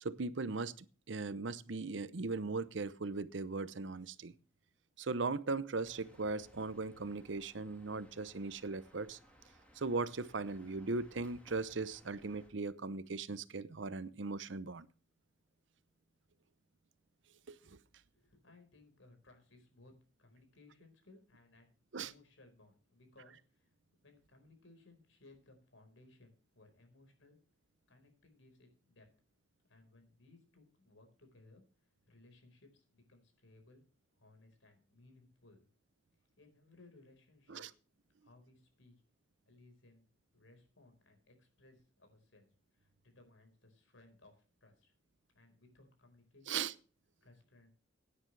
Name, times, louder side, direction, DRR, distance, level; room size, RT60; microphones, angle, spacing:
voice 1, 0.0-4.3 5.0-9.2 9.8-14.9 17.5-17.8 21.9-22.1 37.5-37.7 46.5-46.7, right 3 dB, 70° right, 0.8 m, -38 dB
sound 1, 5.8-12.5, equal, 5° left, 3.2 m, -63 dB
voice 2, 18.1-19.9 20.2-23.7 24.0-27.4 27.9-29.1 29.7-33.8 34.1-35.7 36.4-37.6 38.2-39.0 39.4-40.0 40.3-42.5 42.7-44.9 45.3-46.7 47.2-47.7, left 2 dB, 85° left, 4.5 m, -63 dB
16.5 x 9.8 x 3.3 m
head